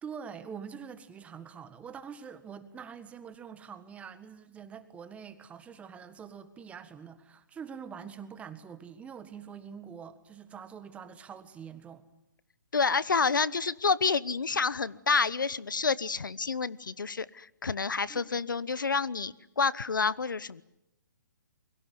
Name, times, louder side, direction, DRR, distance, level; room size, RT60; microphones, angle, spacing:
voice 1, 0.0-12.0 18.1-18.2, right 7 dB, 10° right, 11 dB, 1.6 m, -45 dB
voice 2, 12.7-20.6, left 5 dB, 85° left, 20 dB, 0.9 m, -29 dB
28.5 x 23.0 x 7.8 m, 0.86 s
hypercardioid pair, 135°, 10 cm